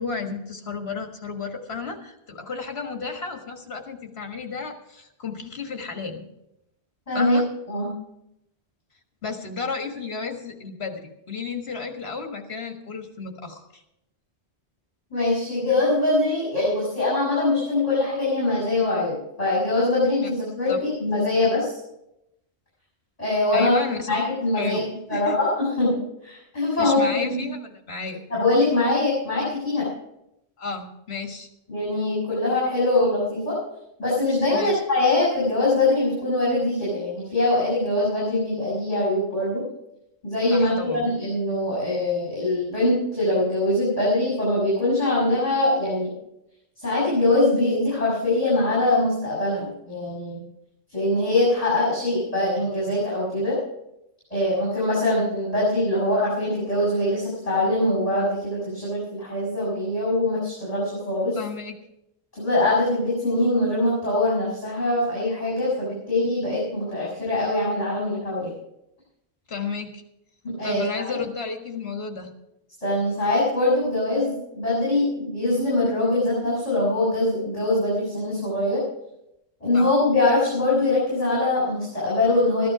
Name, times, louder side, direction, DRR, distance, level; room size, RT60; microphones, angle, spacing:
voice 1, 0.0-6.3 7.1-7.5 9.2-13.8 20.2-20.3 20.7-20.8 23.5-24.2 24.6-24.8 25.1-25.4 26.8-28.2 30.6-31.5 34.5-34.8 40.5-41.1 61.3-61.7 69.5-70.0 70.6-72.3 79.7-79.9, left 4 dB, 70° left, 4 dB, 1.9 m, -32 dB
voice 2, 7.1-7.4 7.7-7.9 15.1-21.8 23.2-23.7 24.1-24.8 25.1-25.9 26.2-27.4 28.3-29.9 31.7-33.6 34.0-39.6 40.2-46.1 46.8-50.4 50.9-53.6 54.3-61.4 62.3-68.5 70.4-71.2 72.8-78.8 79.6-82.7, left 2 dB, 35° left, -6 dB, 6.4 m, -23 dB
14.5 x 12.0 x 4.9 m, 0.83 s
omnidirectional pair, 1.1 m